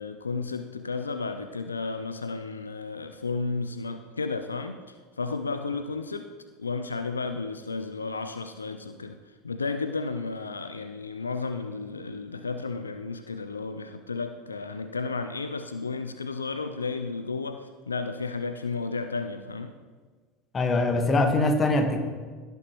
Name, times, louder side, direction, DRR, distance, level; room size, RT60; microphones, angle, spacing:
voice 1, 0.0-6.3 6.6-19.7, left 4 dB, 85° left, 9 dB, 0.4 m, -33 dB
voice 2, 20.5-22.0, left 2 dB, 25° left, 6 dB, 1.3 m, -23 dB
16.5 x 7.0 x 3.0 m, 1.5 s
figure-of-eight pair, 75°, 0 cm